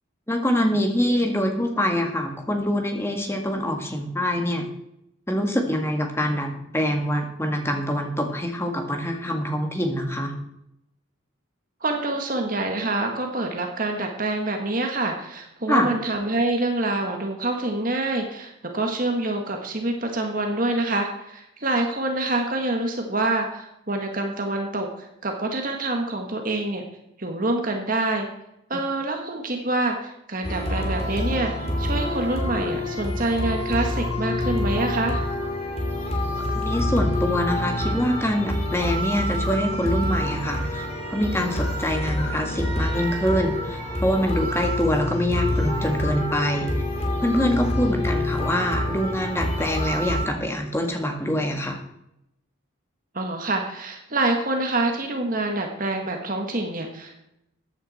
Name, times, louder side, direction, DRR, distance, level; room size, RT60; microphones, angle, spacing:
voice 1, 0.3-4.7 5.3-10.3 15.7-15.9 36.5-40.9 41.1-46.7 47.2-51.8, equal, 10° left, 3 dB, 1.9 m, -25 dB
voice 2, 11.8-26.8 27.2-28.3 28.7-31.5 31.8-35.2 53.1-57.3, right 2 dB, 40° right, 3 dB, 1.6 m, -26 dB
sound 1, 30.4-50.3, left 1 dB, 30° left, 2.7 m, -27 dB
14.5 x 9.9 x 4.3 m, 0.81 s
head